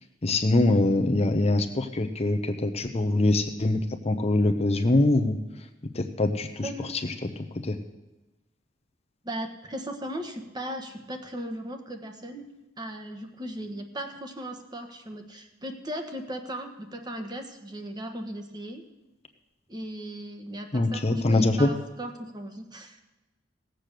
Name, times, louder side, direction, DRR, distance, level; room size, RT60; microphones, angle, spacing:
voice 1, 0.2-5.7 5.9-7.8 20.7-21.7, left 2 dB, 35° left, 6 dB, 0.8 m, -24 dB
voice 2, 6.6-7.0 9.2-12.4 12.8-18.8 19.7-23.0, right 1 dB, 20° right, 5 dB, 1.3 m, -37 dB
17.0 x 7.8 x 6.7 m, 1.1 s
head